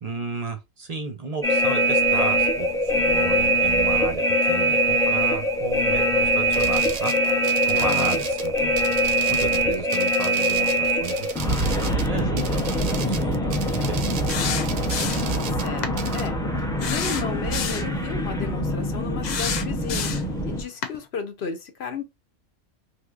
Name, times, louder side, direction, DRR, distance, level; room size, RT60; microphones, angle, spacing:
voice 1, 0.0-11.6 12.0-14.0, right 4 dB, 45° right, 0.5 m, -34 dB
sound 1, 1.4-20.6, right 1 dB, 5° left, 0.4 m, -23 dB
sound 2, 6.5-16.3, right 8 dB, 85° right, 1.0 m, -36 dB
voice 2, 7.7-8.2 14.9-15.9 16.1-20.2 20.5-22.0, left 5 dB, 60° left, 0.9 m, -34 dB
sound 3, 14.3-15.4 15.8-16.0 16.8-17.9 19.2-20.3 20.8-21.0, left 6 dB, 75° left, 0.4 m, -29 dB
3.5 x 2.8 x 2.4 m
omnidirectional pair, 1.4 m